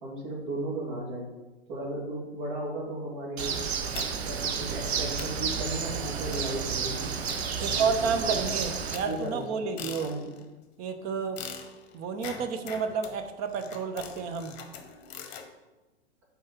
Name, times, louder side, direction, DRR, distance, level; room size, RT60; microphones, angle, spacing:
voice 1, 0.0-1.3 1.7-3.6 4.2-7.1 7.6-8.4 9.0-9.7 10.0-10.3, right 1 dB, 45° right, -2 dB, 2.5 m, -35 dB
Bird, 3.4-9.0, right 6 dB, 65° right, 0.9 m, -31 dB
sound 1, 3.9-4.4 4.8-4.9 5.2-5.5 6.3-6.6 7.3-8.0 8.5-10.5 11.4-15.5, left 7 dB, 40° left, 1.0 m, -43 dB
voice 2, 7.6-10.1 10.8-11.4 11.9-14.5, right 5 dB, 25° right, 7 dB, 0.6 m, -30 dB
5.3 x 4.8 x 5.9 m, 1.1 s
figure-of-eight pair, 100°, 34 cm